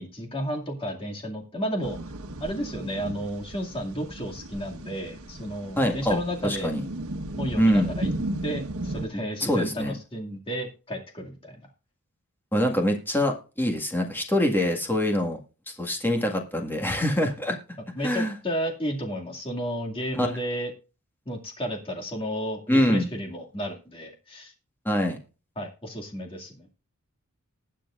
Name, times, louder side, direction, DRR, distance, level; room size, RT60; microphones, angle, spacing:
voice 1, 0.0-2.0 2.4-6.7 7.4-8.1 8.4-11.6 17.9-20.7 21.3-24.5 25.6-26.7, equal, 25° left, 1 dB, 2.3 m, -32 dB
sound 1, 1.8-9.1, right 1 dB, 85° right, 1.3 m, -35 dB
voice 2, 5.8-6.8 7.6-7.9 9.4-9.9 12.5-15.4 15.7-17.6 18.0-18.3 20.1-20.3 22.7-23.1 24.8-25.2, equal, 10° left, 2 dB, 1.8 m, -24 dB
20.0 x 7.6 x 2.5 m, 0.33 s
head